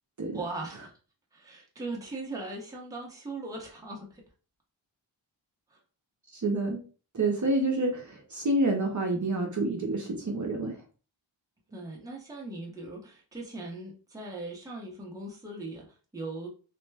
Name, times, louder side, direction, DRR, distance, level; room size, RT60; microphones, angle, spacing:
voice 1, 0.3-0.9 1.3-4.2 5.7-5.8 11.7-16.5, right 2 dB, 10° right, 0.7 m, -39 dB
voice 2, 6.3-6.8 7.1-10.7, right 2 dB, 40° right, 0.7 m, -28 dB
3.3 x 2.1 x 3.3 m
wide cardioid pair, 165°, 46 cm